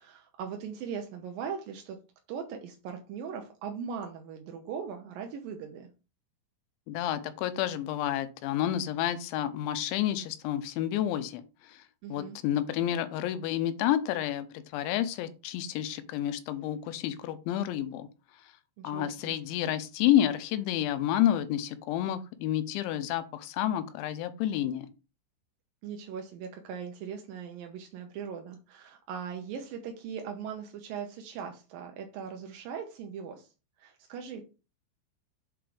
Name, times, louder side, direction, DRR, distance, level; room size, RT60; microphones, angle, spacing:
voice 1, 0.0-2.0 2.3-5.9 12.0-12.4 18.8-19.3 25.8-33.5 33.8-34.4, right 7 dB, 80° right, 2.0 m, -39 dB
voice 2, 6.9-11.8 12.1-18.1 18.8-24.9, left 11 dB, 85° left, 3.0 m, -30 dB
7.8 x 4.7 x 4.9 m
omnidirectional pair, 5.4 m